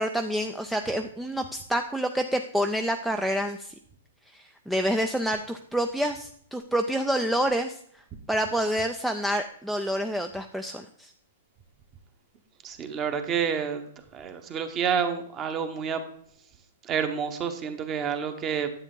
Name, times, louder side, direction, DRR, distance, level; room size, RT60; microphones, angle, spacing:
voice 1, 0.0-3.7 4.3-7.8 8.3-11.1, equal, ahead, 5 dB, 0.3 m, -28 dB
voice 2, 12.6-13.8 14.1-16.0 16.8-18.7, right 7 dB, 20° right, 8 dB, 1.0 m, -29 dB
10.0 x 7.8 x 3.8 m, 0.64 s
hypercardioid pair, 160°, 0 cm